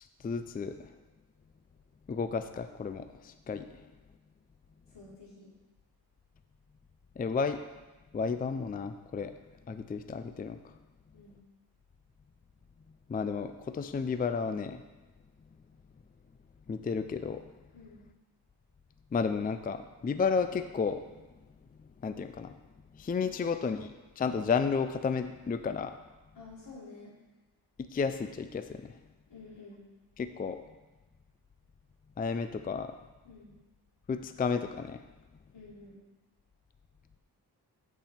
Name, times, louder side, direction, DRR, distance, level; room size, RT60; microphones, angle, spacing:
voice 1, 0.2-0.9 2.1-3.7 7.2-7.6 8.1-9.3 9.7-10.7 13.1-14.8 16.7-17.5 19.1-21.0 21.8-22.6 22.9-26.0 27.9-29.0 30.2-30.6 32.2-33.0 34.1-35.0, left 5 dB, 25° left, 10 dB, 0.4 m, -32 dB
voice 2, 4.9-5.5 11.1-11.4 17.7-18.0 23.2-23.4 26.3-27.1 29.3-29.8 33.2-33.5 35.5-36.0, left 3 dB, 85° left, -6 dB, 3.6 m, -50 dB
8.9 x 8.2 x 4.3 m, 1.1 s
wide cardioid pair, 110°, 41 cm